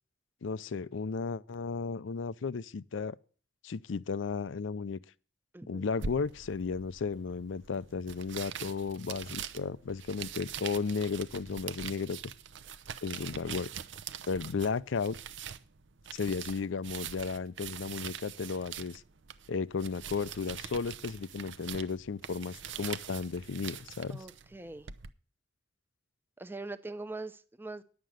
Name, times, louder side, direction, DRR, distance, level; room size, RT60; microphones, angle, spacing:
voice 1, 0.4-3.2 3.6-5.0 5.7-12.2 13.0-13.7 14.3-15.2 16.1-19.0 19.5-24.2, left 5 dB, 75° left, 0.5 m, -34 dB
voice 2, 5.5-5.9 24.1-24.9 26.4-27.8, right 2 dB, 10° right, 0.6 m, -42 dB
sound 1, 6.0-25.1, right 7 dB, 65° right, 0.6 m, -44 dB
10.5 x 7.6 x 6.3 m
head